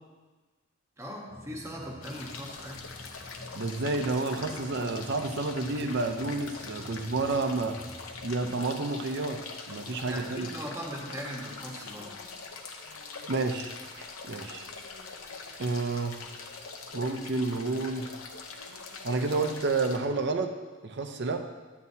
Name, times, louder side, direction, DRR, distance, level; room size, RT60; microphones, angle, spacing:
voice 1, 1.0-2.8 10.1-12.1, equal, 15° right, -1 dB, 1.1 m, -39 dB
sound 1, 1.3-8.6, left 1 dB, 25° left, 0.5 m, -48 dB
sound 2, 2.0-20.0, left 4 dB, 90° left, 0.8 m, -43 dB
voice 2, 3.6-7.8 8.2-9.4 9.7-10.5 13.3-14.6 15.6-16.2 16.9-18.1 19.0-20.5 20.8-21.4, right 3 dB, 55° right, 6 dB, 0.6 m, -30 dB
9.2 x 8.3 x 2.8 m, 1.3 s
head